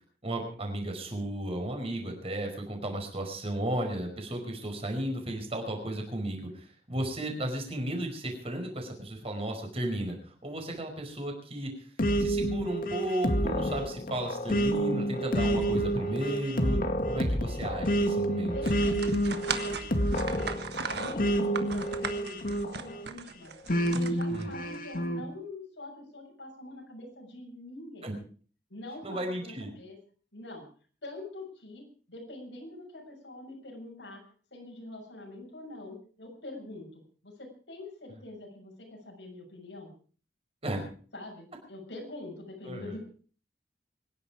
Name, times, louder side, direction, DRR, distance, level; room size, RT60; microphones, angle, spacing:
voice 1, 0.2-11.9 12.2-16.8 17.1-18.6 24.3-24.6 28.0-28.1 29.0-29.7 40.6-40.8 42.7-42.8, right 1 dB, 35° right, 3 dB, 5.1 m, -34 dB
sound 1, 12.0-23.1 23.7-25.2, equal, 55° left, 2.1 m, -29 dB
voice 2, 18.5-20.5 20.8-23.5 23.9-28.1 28.7-30.0 30.3-30.7 31.0-34.2 34.5-39.9 41.1-43.0, left 2 dB, 85° left, 1 dB, 6.7 m, -44 dB
sound 2, 18.6-24.8, right 5 dB, 65° right, 1.5 m, -38 dB
25.0 x 11.0 x 4.9 m, 0.42 s
head